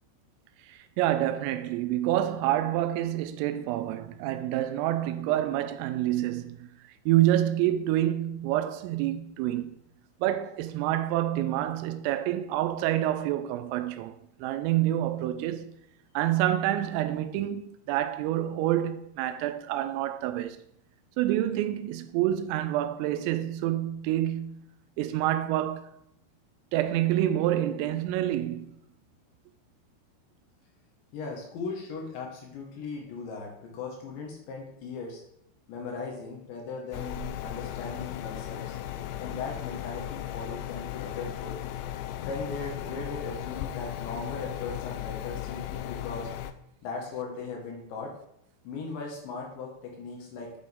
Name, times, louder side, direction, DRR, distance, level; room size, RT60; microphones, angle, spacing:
voice 1, 0.7-6.7 7.1-9.8 10.2-14.1 14.4-15.8 16.2-20.6 21.2-24.7 25.0-25.9 26.7-28.8, right 13 dB, 85° right, 3.2 m, -27 dB
voice 2, 31.1-35.2 35.7-38.8 39.2-41.6 42.2-46.3 46.8-48.1 48.7-50.6, left 4 dB, 70° left, 3.6 m, -38 dB
sound 1, 36.9-46.5, left 11 dB, 85° left, 2.7 m, -36 dB
8.5 x 7.4 x 3.6 m
omnidirectional pair, 5.8 m